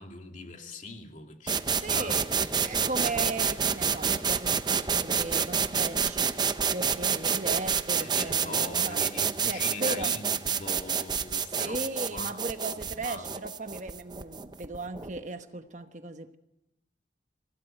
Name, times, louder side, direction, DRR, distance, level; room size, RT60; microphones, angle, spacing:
voice 1, 0.0-2.7 8.0-11.8 12.1-12.4 12.8-13.3, left 3 dB, 45° left, 3 dB, 2.6 m, -42 dB
sound 1, 1.5-15.2, right 6 dB, 25° right, 0.7 m, -28 dB
voice 2, 1.7-9.0 9.4-10.2 11.3-16.4, right 3 dB, 40° right, 8 dB, 1.1 m, -37 dB
25.0 x 16.0 x 9.2 m, 0.97 s
head